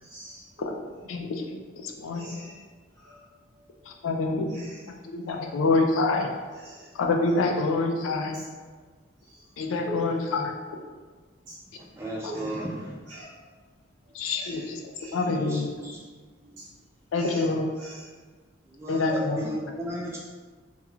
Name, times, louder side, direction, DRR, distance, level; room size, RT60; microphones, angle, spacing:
voice 1, 0.0-0.7 2.1-2.6 3.0-3.2 4.5-4.9 6.5-6.9 8.3-8.4 9.3-9.4 9.8-10.1 11.5-11.6 12.3-13.3 14.3-14.7 15.0-15.2 16.4-16.7 17.1-17.5 17.8-18.1 19.1-19.2, equal, 70° right, -10 dB, 0.7 m, -41 dB
voice 2, 1.8-2.3 4.0-4.5 5.0-6.3 7.0-8.4 9.6-10.5 14.1-14.8 15.1-15.7 17.1-17.7 18.9-19.4, left 3 dB, 85° left, 2 dB, 0.4 m, -26 dB
voice 3, 12.0-12.9 15.2-16.0 18.8-20.2, equal, 15° right, -3 dB, 0.3 m, -34 dB
2.3 x 2.3 x 3.0 m, 1.5 s
head